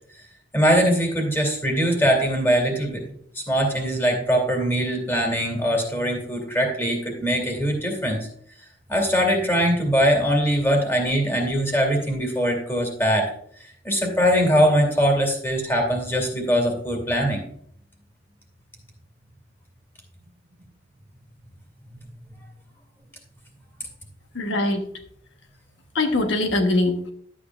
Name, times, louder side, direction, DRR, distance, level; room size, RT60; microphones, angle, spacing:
voice 1, 0.5-3.0 3.5-8.3 8.9-13.3 13.8-17.4, equal, 10° left, 2 dB, 2.4 m, -21 dB
voice 2, 24.3-24.9 25.9-27.1, left 2 dB, 85° left, 5 dB, 1.1 m, -22 dB
11.5 x 8.6 x 2.4 m, 0.62 s
head